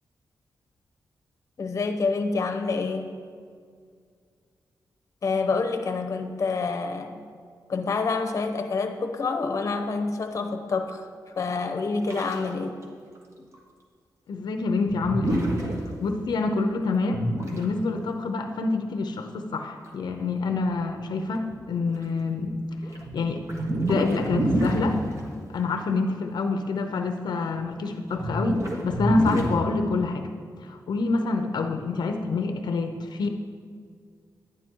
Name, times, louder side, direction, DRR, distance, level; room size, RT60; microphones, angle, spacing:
voice 1, 1.6-3.2 5.2-7.2 7.7-11.1 11.4-12.8, left 4 dB, 45° left, 6 dB, 0.8 m, -27 dB
sound 1, 12.1-12.6 12.8-12.9 13.2-13.3 13.5-13.6 14.9-15.7 17.1-17.6 19.9-20.0 20.7-20.8 21.3-22.0 22.4-25.3 27.5-27.6 28.1-29.6, right 1 dB, 40° right, 1.5 m, -28 dB
voice 2, 14.3-22.6 22.8-23.5 23.9-25.0 25.5-30.3 30.6-33.3, left 3 dB, 75° left, 5 dB, 0.7 m, -27 dB
11.0 x 9.9 x 4.5 m, 2.1 s
wide cardioid pair, 165°, 7 cm